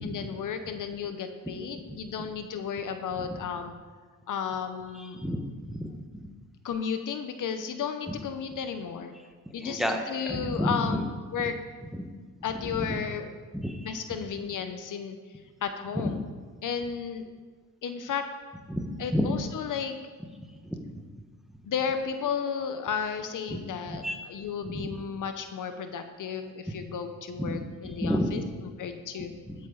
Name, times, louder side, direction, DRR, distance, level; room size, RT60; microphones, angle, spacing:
voice 1, 0.0-3.7 4.3-5.2 6.6-9.1 9.5-11.6 12.4-13.3 13.8-15.2 15.6-16.2 16.6-17.3 17.8-18.2 19.0-20.0 21.7-28.4 28.8-29.3, left 7 dB, 65° left, 8 dB, 0.9 m, -33 dB
voice 2, 5.1-5.9 8.1-8.2 9.6-11.0 11.9-12.0 12.7-13.0 13.5-13.9 18.7-19.3 20.6-20.8 23.5-23.6 23.9-24.2 24.7-24.9 27.4-27.6 27.8-28.4 29.5-29.6, equal, ahead, 3 dB, 1.4 m, -30 dB
12.5 x 8.4 x 4.0 m, 1.5 s
cardioid pair, 80°, 34 cm